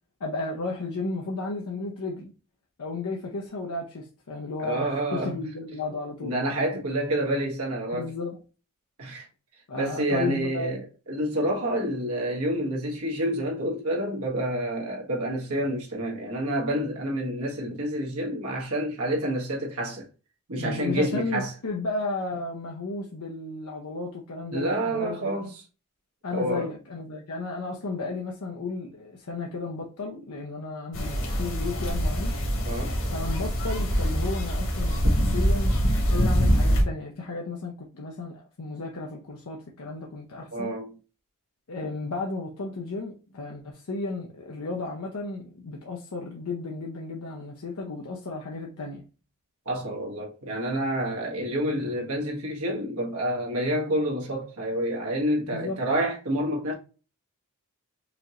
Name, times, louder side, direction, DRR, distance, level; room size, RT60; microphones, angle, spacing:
voice 1, 0.2-2.3 2.8-6.3 7.9-8.4 9.7-10.8 20.6-25.5 26.2-32.3 33.1-35.8 36.0-40.8 41.7-49.0 55.5-55.8, left 3 dB, 80° left, 0.7 m, -34 dB
voice 2, 4.6-5.4 6.2-8.1 9.0-9.3 9.8-20.1 20.5-21.5 24.5-25.5 26.3-26.7 32.6-32.9 40.5-41.0 49.6-56.7, right 1 dB, 80° right, 1.5 m, -28 dB
sound 1, 30.9-36.8, equal, 60° left, 1.5 m, -24 dB
5.0 x 2.9 x 2.5 m
head